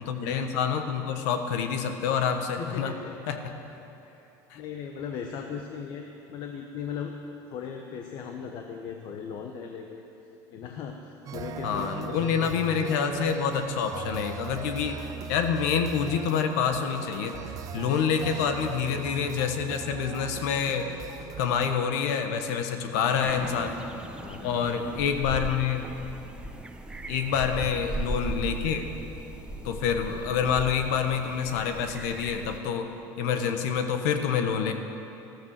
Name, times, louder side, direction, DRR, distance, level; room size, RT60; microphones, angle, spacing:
voice 1, 0.0-2.9 3.3-3.5 4.5-4.6 11.6-15.0 15.3-17.4 17.7-20.9 21.4-23.8 24.4-25.9 27.1-28.8 29.6-32.9 33.2-34.7, left 7 dB, 80° left, 6 dB, 1.4 m, -27 dB
voice 2, 2.6-3.1 4.0-4.3 4.5-7.1 7.5-10.0 10.5-12.7 18.2-18.5 22.9-23.2 24.2-24.8 27.2-27.4 29.6-29.8 33.4-33.5, left 7 dB, 60° left, 3 dB, 1.2 m, -38 dB
sound 1, 11.3-21.8, right 8 dB, 45° right, 0.8 m, -39 dB
sound 2, 23.2-32.6, right 2 dB, 10° right, 1.0 m, -37 dB
14.5 x 13.5 x 6.6 m, 2.9 s
supercardioid pair, 115°, 9 cm